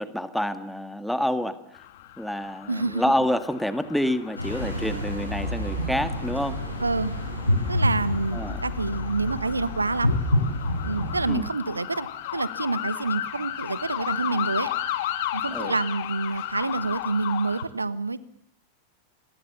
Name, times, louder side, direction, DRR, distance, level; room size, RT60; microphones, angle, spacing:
voice 1, 0.0-1.6 2.2-6.7 8.3-8.6 11.3-11.5 15.5-15.8, left 1 dB, ahead, 11 dB, 1.7 m, -28 dB
sound 1, 1.7-17.6, left 12 dB, 55° left, 2.2 m, -35 dB
voice 2, 2.7-3.0 6.8-7.1 7.7-10.2 10.8-14.7 15.3-18.2, right 3 dB, 80° right, 17 dB, 1.1 m, -27 dB
sound 2, 4.4-11.3, left 1 dB, 85° left, 6.4 m, -28 dB
27.5 x 22.0 x 7.0 m, 0.69 s
figure-of-eight pair, 90°, 0 cm